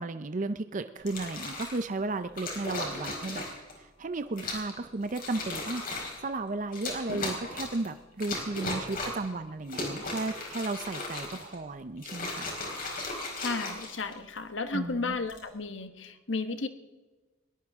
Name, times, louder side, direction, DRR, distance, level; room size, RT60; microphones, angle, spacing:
voice 1, 0.0-3.4 3.8-5.8 6.2-12.5 14.7-15.2, right 3 dB, 40° right, 10 dB, 0.6 m, -34 dB
sound 1, 1.0-1.8 2.4-3.7 4.4-4.7 5.1-6.2 6.7-7.9 8.2-9.3 9.6-11.6 12.0-14.4 15.1-15.5, left 2 dB, 50° left, 4.7 m, -36 dB
voice 2, 13.4-16.7, left 3 dB, 75° left, 8 dB, 1.3 m, -33 dB
22.0 x 18.0 x 3.6 m, 1.2 s
head